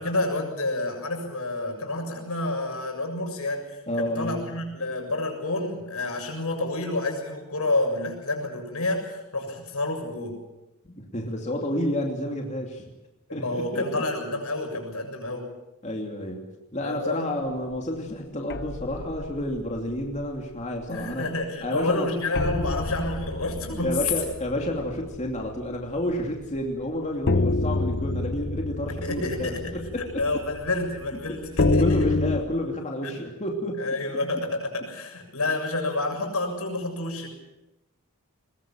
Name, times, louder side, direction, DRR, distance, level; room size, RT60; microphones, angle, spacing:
voice 1, 0.0-10.4 13.3-15.5 16.8-17.3 20.9-24.0 28.9-32.0 33.0-33.2 33.8-37.3, left 2 dB, 75° left, 3 dB, 7.1 m, -29 dB
voice 2, 3.9-4.5 10.8-12.9 13.3-14.0 15.8-16.5 16.7-21.3 21.6-22.1 23.8-30.4 31.6-33.9, left 1 dB, 30° left, 1 dB, 2.8 m, -30 dB
sound 1, 18.5-20.4 20.8-21.0 21.4-21.5 22.3-26.2 26.5-26.6 27.3-32.4, left 2 dB, 50° left, 0.8 m, -28 dB
22.5 x 21.5 x 7.5 m, 0.95 s
head